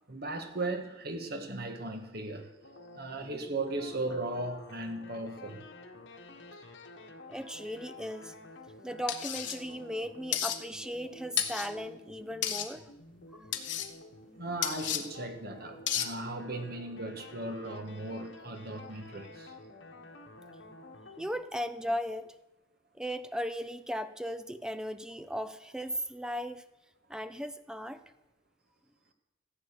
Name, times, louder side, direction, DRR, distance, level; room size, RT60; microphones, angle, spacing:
voice 1, 0.1-2.5 2.9-5.6 14.4-19.5, right 2 dB, 55° right, 6 dB, 1.6 m, -37 dB
sound 1, 2.6-21.3, left 2 dB, 85° left, 1.7 m, -51 dB
voice 2, 7.3-8.3 8.8-12.9 13.3-13.5 21.2-22.3 22.9-26.6 27.1-28.0, equal, 5° right, 11 dB, 0.6 m, -37 dB
sound 2, 9.1-9.6 10.3-10.6 11.4-11.7 12.4-12.7 13.5-13.9 14.6-15.0 15.9-16.1, left 11 dB, 70° left, 1.1 m, -32 dB
14.5 x 8.1 x 6.8 m, 0.99 s
head